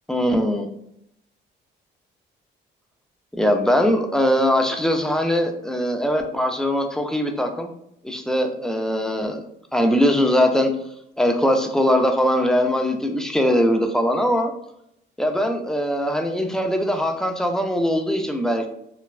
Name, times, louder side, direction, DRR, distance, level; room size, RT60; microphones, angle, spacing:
voice 1, 0.1-0.7 3.3-7.7 8.0-9.4 9.7-10.7 11.2-14.5 15.2-18.7, equal, 5° left, 4 dB, 0.3 m, -21 dB
3.1 x 2.2 x 2.3 m, 0.75 s
cardioid pair, 90°, 20 cm